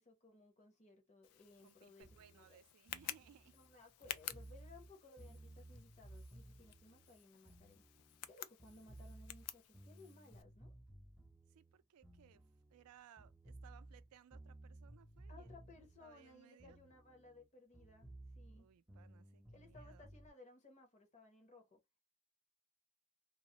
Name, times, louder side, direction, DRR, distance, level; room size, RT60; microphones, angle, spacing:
voice 1, 0.0-2.6 3.5-10.7 15.3-18.7 19.5-21.8, left 3 dB, 30° left, 0.7 m, -61 dB
Tick, 1.2-10.4, left 12 dB, 85° left, 0.3 m, -52 dB
voice 2, 1.6-3.6 11.5-12.4 12.7-15.7 16.0-16.8 18.5-20.1, right 9 dB, 85° right, 0.3 m, -64 dB
sound 1, 2.0-8.3 8.6-12.9 13.2-17.5 17.7-20.3, right 1 dB, 5° right, 0.3 m, -58 dB
2.3 x 2.0 x 2.8 m
head